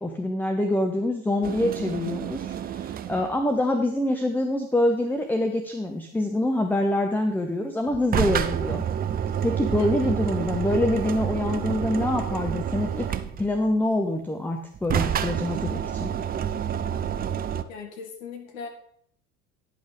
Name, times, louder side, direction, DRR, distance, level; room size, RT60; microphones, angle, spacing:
voice 1, 0.0-8.8 9.4-13.1 13.4-16.1, left 1 dB, 5° left, 5 dB, 0.8 m, -25 dB
sound 1, 1.4-3.4 7.9-13.7 14.7-17.6, right 9 dB, 20° right, 0.4 m, -28 dB
voice 2, 9.8-10.1 17.7-18.7, left 7 dB, 65° left, 4 dB, 1.9 m, -37 dB
10.5 x 5.3 x 5.2 m, 0.66 s
figure-of-eight pair, 65°, 42 cm